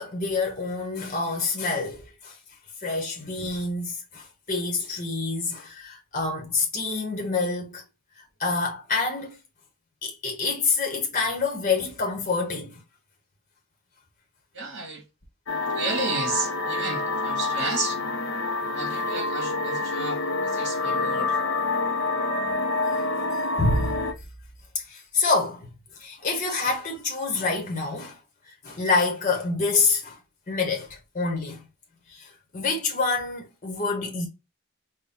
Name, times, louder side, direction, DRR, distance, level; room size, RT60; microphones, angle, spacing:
voice 1, 0.0-2.4 2.8-7.8 8.4-9.4 10.0-12.8 18.9-19.0 23.2-23.3 23.6-24.0 24.7-25.7 26.0-28.2 28.4-30.2 30.5-31.7 32.1-34.3, left 3 dB, 35° left, 0.9 m, -27 dB
voice 2, 14.5-15.0 15.7-18.0 18.7-21.4, right 3 dB, 50° right, 1.8 m, -32 dB
sound 1, 15.5-24.1, left 3 dB, 60° left, 0.7 m, -27 dB
4.1 x 2.2 x 3.4 m
head